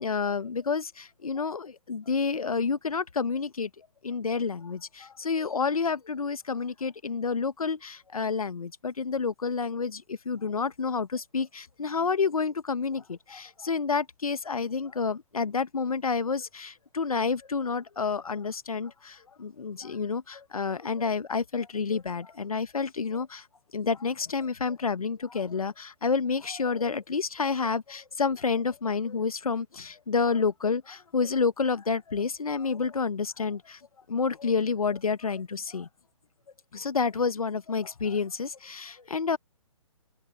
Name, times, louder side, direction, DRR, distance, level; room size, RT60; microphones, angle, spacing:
voice 1, 0.0-3.7 4.0-23.5 23.7-33.8 34.1-35.9 36.7-39.4, left 5 dB, 75° left, 1.4 m, -29 dB
figure-of-eight pair, 135°, 18 cm